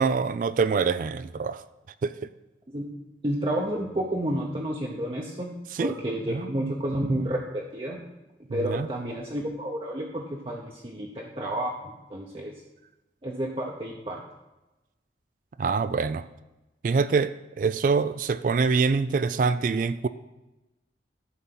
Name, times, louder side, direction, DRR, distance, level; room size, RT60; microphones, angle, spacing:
voice 1, 0.0-1.6 2.0-2.1 5.8-5.9 6.3-6.7 8.5-8.9 15.6-16.3 16.8-20.1, right 5 dB, 50° right, 14 dB, 0.3 m, -25 dB
voice 2, 3.2-5.5 5.8-8.0 8.5-12.5 13.2-14.2, right 1 dB, 30° right, -2 dB, 0.8 m, -30 dB
11.0 x 4.1 x 5.9 m, 1.0 s
head